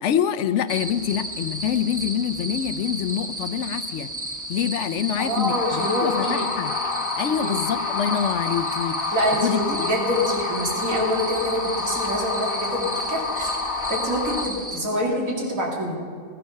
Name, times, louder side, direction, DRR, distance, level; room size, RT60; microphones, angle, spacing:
voice 1, 0.0-4.1 4.5-6.7 7.2-9.2 9.4-9.9, left 9 dB, 70° left, 11 dB, 0.9 m, -26 dB
sound 1, 0.7-14.8, right 1 dB, 15° right, 1.0 m, -33 dB
voice 2, 5.2-6.5 7.4-7.6 9.1-13.5 13.9-15.9, equal, 85° right, -1 dB, 2.6 m, -26 dB
sound 2, 5.5-14.5, left 4 dB, 85° left, 1.4 m, -29 dB
17.0 x 10.0 x 5.6 m, 2.3 s
omnidirectional pair, 1.4 m